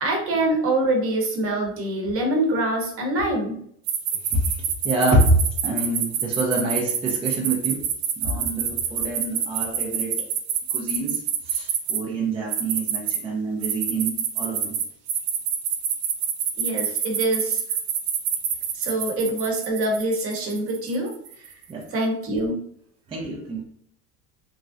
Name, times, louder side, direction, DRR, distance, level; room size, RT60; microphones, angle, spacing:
voice 1, 0.0-3.6 16.6-17.6 18.7-21.1 21.4-21.5 21.9-22.6, right 1 dB, 40° right, 1 dB, 0.9 m, -24 dB
sound 1, 3.9-12.0 12.5-13.2 13.6-21.5, right 8 dB, 75° right, 0.7 m, -26 dB
voice 2, 4.3-7.8 8.2-10.3 10.7-14.8 21.7-21.9 23.1-23.6, right 1 dB, 15° right, -2 dB, 0.4 m, -26 dB
3.1 x 2.5 x 2.4 m, 0.67 s
cardioid pair, 140°, 34 cm